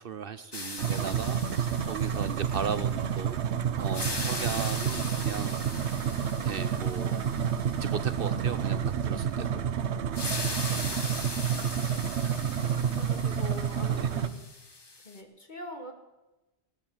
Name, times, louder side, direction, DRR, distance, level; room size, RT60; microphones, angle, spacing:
voice 1, 0.0-3.4 3.7-6.1 6.3-9.7 13.9-14.1, right 6 dB, 60° right, 13 dB, 0.8 m, -37 dB
sound 1, 0.5-3.4 3.8-8.6 10.1-15.2, left 2 dB, 25° left, 1.1 m, -40 dB
sound 2, 0.8-14.3, right 8 dB, 75° right, 1.1 m, -29 dB
voice 2, 12.9-14.4 15.0-15.9, left 3 dB, 40° left, 3 dB, 2.3 m, -43 dB
17.0 x 11.0 x 7.2 m, 1.0 s
omnidirectional pair, 1.2 m